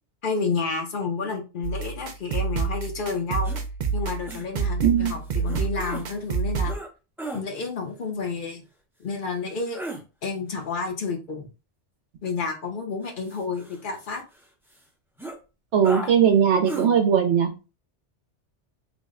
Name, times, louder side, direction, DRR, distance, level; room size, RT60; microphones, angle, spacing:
voice 1, 0.2-3.5 3.9-6.7 7.3-8.6 9.0-9.8 10.2-11.5 12.2-14.2 16.0-16.1, left 4 dB, 50° left, 3 dB, 0.8 m, -30 dB
sound 1, 1.6-6.7, right 5 dB, 55° right, 0.5 m, -28 dB
sound 2, 3.4-3.6 4.3-4.5 5.5-6.0 6.6-6.9 7.2-7.4 9.6-10.0 13.0-14.4 14.7-14.8 15.2-15.4 15.8-16.1 16.6-16.9, right 1 dB, 5° right, 0.5 m, -35 dB
voice 2, 4.8-5.1 15.7-17.5, right 8 dB, 75° right, 4 dB, 0.9 m, -19 dB
3.4 x 2.1 x 3.6 m, 0.30 s
omnidirectional pair, 1.2 m